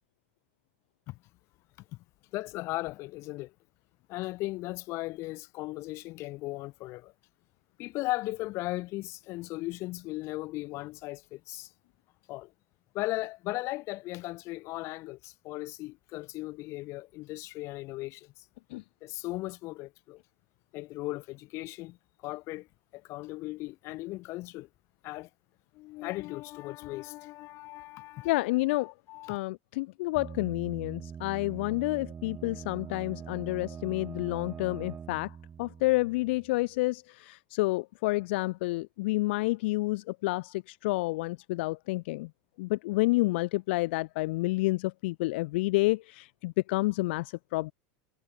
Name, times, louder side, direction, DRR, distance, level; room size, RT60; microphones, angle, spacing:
voice 1, 2.3-3.5 4.1-7.1 7.8-11.7 12.3-12.5 12.9-18.3 19.0-20.2 20.7-22.0 22.2-22.7 22.9-24.7 25.0-25.3 25.7-28.3 28.8-29.4, left 19 dB, 45° left, 4.5 m, -37 dB
voice 2, 28.2-28.9 29.3-42.3 42.6-47.7, left 21 dB, 70° left, 1.2 m, -29 dB
sound 1, 30.2-36.8, right 7 dB, 20° right, 4.4 m, -43 dB
supercardioid pair, 145°, 6 cm